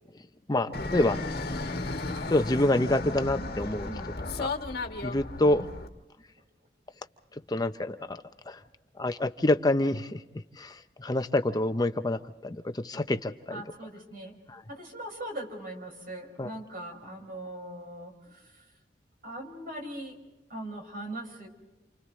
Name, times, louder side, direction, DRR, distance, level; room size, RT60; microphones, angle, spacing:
voice 1, 0.5-1.7 2.3-3.9 4.4-4.5 5.0-5.6 7.5-8.2 8.5-8.6 9.0-10.2 10.6-13.6 14.5-14.6 16.4-16.5, left 1 dB, 25° left, 8 dB, 0.7 m, -27 dB
Fixed-wing aircraft airplane, 0.7-5.9, left 2 dB, 60° left, 1.4 m, -34 dB
voice 2, 3.8-4.1 5.4-5.7 13.5-14.4 14.7-18.7 19.2-20.2 20.5-21.5, right 1 dB, 55° right, 2 dB, 5.7 m, -40 dB
29.5 x 28.5 x 3.2 m, 1.1 s
head